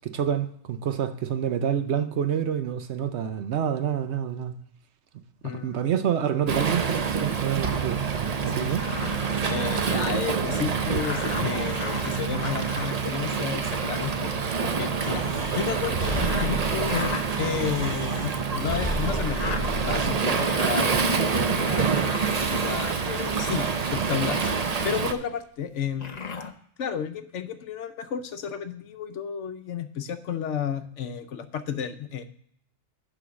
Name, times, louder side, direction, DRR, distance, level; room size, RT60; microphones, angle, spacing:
voice 1, 0.0-4.6 5.4-8.0 8.4-8.9, right 9 dB, 65° right, 0.9 m, -27 dB
voice 2, 5.4-5.9 8.4-8.5 9.5-15.2 15.5-24.4 24.8-26.2 26.8-32.2, left 8 dB, 70° left, 1.0 m, -32 dB
Waves surf, 6.5-25.1, right 5 dB, 40° right, 0.6 m, -27 dB
sound 1, 8.4-10.3 10.9-14.0 14.6-15.1 15.7-18.5 19.0-20.0 20.4-21.5 22.0-23.2 23.9-24.7 25.9-26.5, left 5 dB, 40° left, 0.7 m, -38 dB
Breathing, 15.0-20.2, left 1 dB, 5° right, 3.3 m, -33 dB
11.0 x 3.9 x 6.9 m
omnidirectional pair, 1.3 m